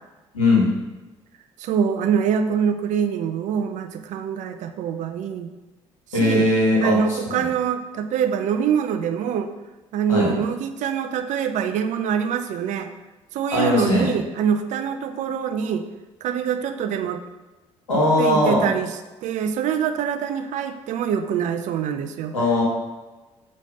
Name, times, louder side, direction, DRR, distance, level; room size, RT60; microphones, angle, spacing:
voice 1, 0.3-0.7 6.1-7.5 10.1-10.3 13.5-14.1 17.9-18.7 22.3-22.6, left 2 dB, 80° left, -6 dB, 1.9 m, -19 dB
voice 2, 1.6-5.5 6.1-6.5 6.8-9.5 9.9-12.9 13.3-15.8 16.2-17.2 18.2-18.9 19.2-22.3, right 7 dB, 50° right, 7 dB, 0.5 m, -24 dB
6.4 x 3.1 x 5.4 m, 1.1 s
figure-of-eight pair, 50°, 16 cm